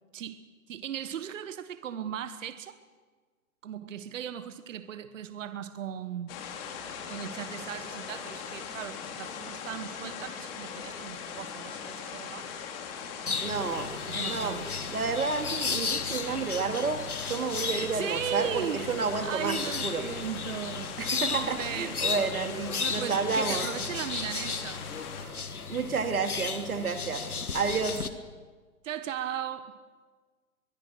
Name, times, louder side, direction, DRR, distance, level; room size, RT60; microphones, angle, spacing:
voice 1, 0.1-2.8 3.6-6.4 7.1-12.5 13.2-13.5 14.1-14.7 17.7-18.9 19.2-21.0 21.3-22.0 22.8-24.8 28.8-29.7, right 9 dB, 60° right, 12 dB, 1.4 m, -37 dB
sound 1, 6.3-25.2, left 7 dB, 40° left, 3.7 m, -40 dB
sound 2, 13.3-28.1, left 5 dB, 85° left, 1.6 m, -35 dB
voice 2, 13.4-13.9 14.2-14.6 14.9-19.6 19.8-20.0 21.0-23.7 25.7-27.2 27.5-28.0, right 4 dB, 80° right, 6 dB, 2.7 m, -30 dB
23.0 x 22.0 x 6.3 m, 1.4 s
figure-of-eight pair, 120°, 43 cm